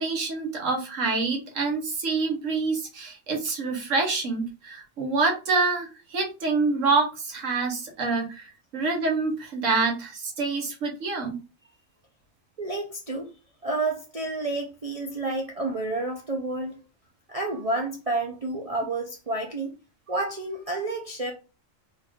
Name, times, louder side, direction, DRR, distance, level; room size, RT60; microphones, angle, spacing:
voice 1, 0.0-11.4, right 4 dB, 70° right, 1.4 m, -26 dB
voice 2, 12.6-13.3 13.6-16.8 17.3-19.8 20.1-21.3, right 2 dB, 50° right, 0.4 m, -30 dB
3.6 x 2.5 x 3.5 m
omnidirectional pair, 1.4 m